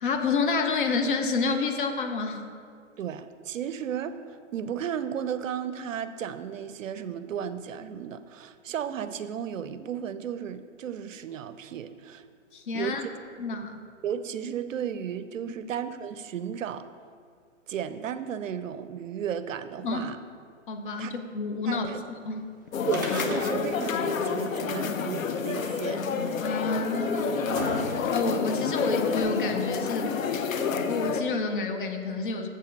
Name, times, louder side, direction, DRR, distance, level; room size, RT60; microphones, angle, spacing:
voice 1, 0.0-2.5 12.5-13.0 13.4-13.9 19.8-20.1 20.7-21.9 22.3-22.5 26.4-30.1 30.9-32.5, left 3 dB, 40° left, 6 dB, 0.7 m, -29 dB
voice 2, 3.0-12.2 12.7-13.0 14.0-16.9 17.7-20.2 21.0-21.1 21.7-22.0 22.9-26.0, right 8 dB, 75° right, 12 dB, 0.6 m, -34 dB
sound 1, 22.7-31.2, left 5 dB, 85° left, 0.7 m, -29 dB
sound 2, 22.9-23.9 24.2-24.3 25.2-25.3 26.2-26.3 27.0-28.3 29.2-29.3, right 2 dB, 15° right, 0.3 m, -35 dB
7.4 x 5.6 x 5.2 m, 2.1 s
hypercardioid pair, 155°, 39 cm